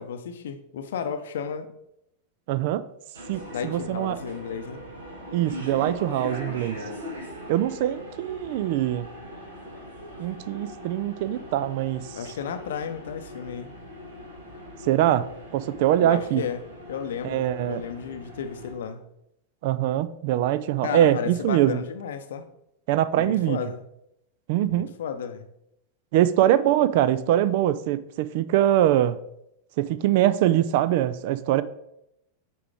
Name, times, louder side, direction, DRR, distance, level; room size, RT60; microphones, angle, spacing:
voice 1, 0.0-1.7 3.5-4.8 12.2-13.7 16.0-16.6 16.9-19.0 20.8-22.4 23.1-23.8 24.7-25.5, left 7 dB, 60° left, 0.6 m, -33 dB
voice 2, 2.5-2.8 3.3-4.2 5.3-6.8 7.5-9.1 10.2-12.2 14.8-16.4 17.2-17.8 19.6-21.8 22.9-23.6 24.5-24.9 26.1-29.2 29.8-31.6, right 12 dB, 50° right, 0.3 m, -23 dB
sound 1, 3.1-18.7, equal, 75° right, 1.6 m, -41 dB
8.4 x 4.6 x 3.5 m
figure-of-eight pair, 90°, 0 cm